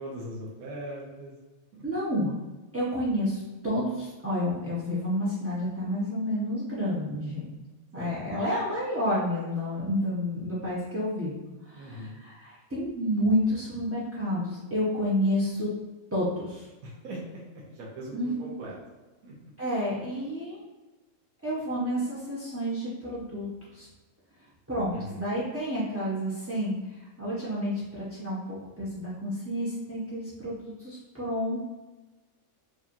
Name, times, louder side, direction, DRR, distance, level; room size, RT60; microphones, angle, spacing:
voice 1, 0.0-1.3 1.7-1.8 7.9-8.2 11.8-12.2 16.8-18.7 19.2-19.3 24.9-25.2, right 1 dB, 80° right, -4 dB, 1.3 m, -40 dB
voice 2, 1.8-2.3 2.7-7.5 7.9-11.3 11.6-15.7 16.1-16.7 18.1-18.3 19.6-20.6 21.4-23.9 24.7-26.7 27.2-31.6, equal, 20° right, -9 dB, 0.4 m, -30 dB
4.8 x 2.4 x 2.8 m, 1.2 s
omnidirectional pair, 1.5 m